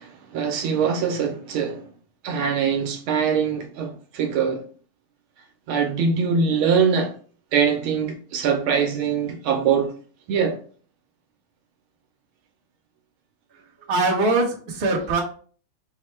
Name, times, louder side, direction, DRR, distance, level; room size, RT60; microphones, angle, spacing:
voice 1, 0.0-1.8 2.2-4.6 5.7-7.1 7.5-9.9 10.3-10.6, right 6 dB, 85° right, 1.6 m, -23 dB
voice 2, 13.9-15.2, right 2 dB, 40° right, 0.9 m, -22 dB
5.5 x 2.1 x 3.2 m
omnidirectional pair, 2.2 m